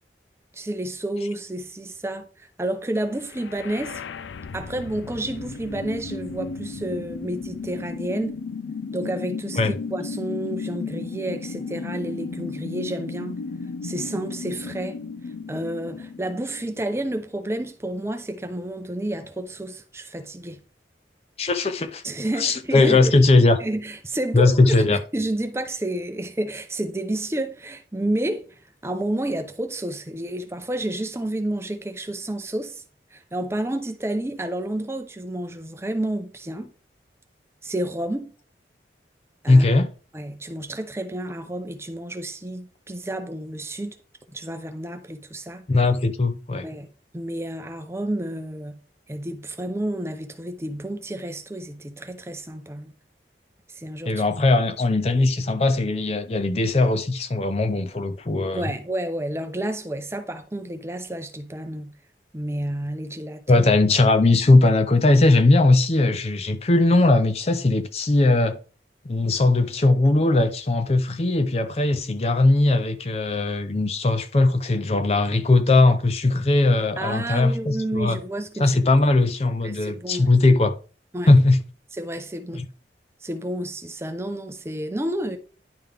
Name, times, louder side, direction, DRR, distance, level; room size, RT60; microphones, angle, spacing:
voice 1, 0.5-4.0 4.5-8.4 8.9-13.4 13.8-15.0 15.5-20.6 22.0-23.0 23.6-24.6 24.8-32.8 33.1-36.7 37.6-38.3 39.4-39.7 40.1-44.0 44.3-45.7 46.6-46.9 47.1-48.8 49.1-52.9 53.7-54.1 58.5-61.9 62.3-63.7 77.0-78.8 79.6-80.3 81.1-81.3 81.9-82.7 83.2-85.4, right 1 dB, 15° right, 0.6 m, -30 dB
sound 1, 3.2-17.2, left 4 dB, 85° left, 0.4 m, -34 dB
voice 2, 21.4-22.0 22.4-23.6 24.3-25.0 39.5-39.9 45.7-46.7 54.1-58.7 63.5-68.6 69.1-78.2 78.6-80.7 81.3-81.6 82.5-82.6, left 2 dB, 35° left, 0.5 m, -19 dB
10.5 x 3.8 x 3.4 m
head